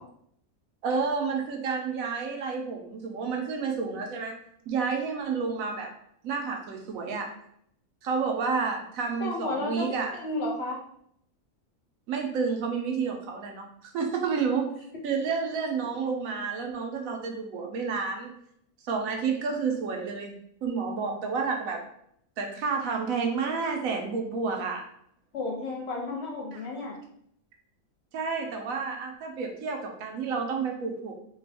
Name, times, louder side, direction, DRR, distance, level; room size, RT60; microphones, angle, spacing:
voice 1, 0.8-4.4 4.7-5.9 6.2-7.3 8.0-10.1 12.1-13.7 13.9-14.7 15.0-18.3 18.8-21.8 22.4-24.9 28.1-31.1, right 5 dB, 75° right, 2 dB, 1.0 m, -30 dB
voice 2, 9.2-9.9 10.1-10.8 25.3-27.0, left 2 dB, 60° left, -2 dB, 0.8 m, -32 dB
3.3 x 2.2 x 3.4 m, 0.70 s
omnidirectional pair, 1.5 m